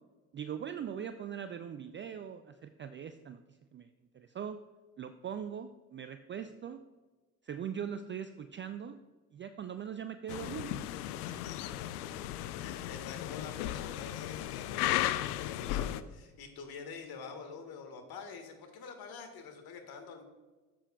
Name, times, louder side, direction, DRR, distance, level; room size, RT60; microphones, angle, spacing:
voice 1, 0.3-3.4 3.7-3.9 4.1-4.6 5.0-6.8 7.4-9.0 9.3-10.8, right 8 dB, 25° right, 10 dB, 0.4 m, -41 dB
sound 1, 10.3-16.0, left 13 dB, 80° left, 0.5 m, -35 dB
voice 2, 12.6-20.2, left 5 dB, 55° left, 5 dB, 1.7 m, -47 dB
12.5 x 7.7 x 2.3 m, 1.3 s
hypercardioid pair, 55°, 45 cm